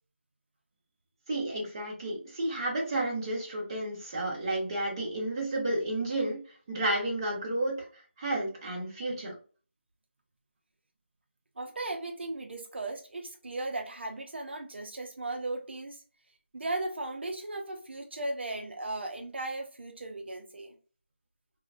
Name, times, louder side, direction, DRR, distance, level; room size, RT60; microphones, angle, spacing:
voice 1, 1.3-6.4 6.7-7.8 8.2-9.3, right 1 dB, 20° right, -4 dB, 0.8 m, -31 dB
voice 2, 11.6-16.0 16.5-20.7, right 2 dB, 60° right, 2 dB, 0.5 m, -36 dB
3.1 x 2.1 x 2.4 m, 0.38 s
figure-of-eight pair, 175°, 7 cm